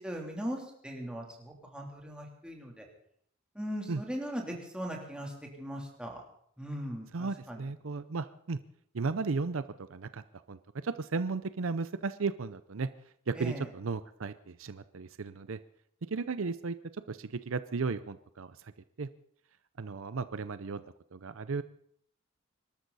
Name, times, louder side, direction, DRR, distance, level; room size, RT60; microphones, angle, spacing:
voice 1, 0.0-2.8 3.5-6.2 6.6-7.6 13.3-13.7, equal, 5° right, -1 dB, 3.2 m, -39 dB
voice 2, 7.1-8.6 8.9-9.6 9.9-10.2 10.5-12.9 13.3-15.6 16.1-16.8 17.1-18.5 19.0-19.1 19.8-20.8 21.1-21.6, right 4 dB, 70° right, 13 dB, 0.6 m, -35 dB
25.0 x 13.0 x 4.1 m, 0.66 s
head